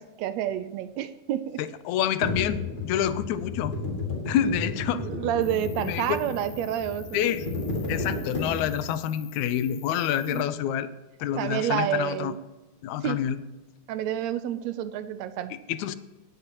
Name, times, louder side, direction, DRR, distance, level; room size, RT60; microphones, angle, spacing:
voice 1, 0.0-1.6 4.9-7.2 10.3-10.5 11.4-12.4 13.0-13.2 13.9-15.5, right 10 dB, 80° right, 13 dB, 1.7 m, -29 dB
voice 2, 1.6-3.7 4.3-5.1 5.8-6.2 7.1-7.5 7.9-10.9 11.2-12.3 12.8-13.4 15.7-16.0, left 10 dB, 90° left, 14 dB, 2.0 m, -27 dB
sound 1, 2.2-8.9, left 2 dB, 20° left, 2.4 m, -33 dB
Cricket, 5.4-10.4, left 9 dB, 70° left, 2.1 m, -49 dB
18.0 x 8.0 x 3.0 m, 1.1 s
omnidirectional pair, 3.3 m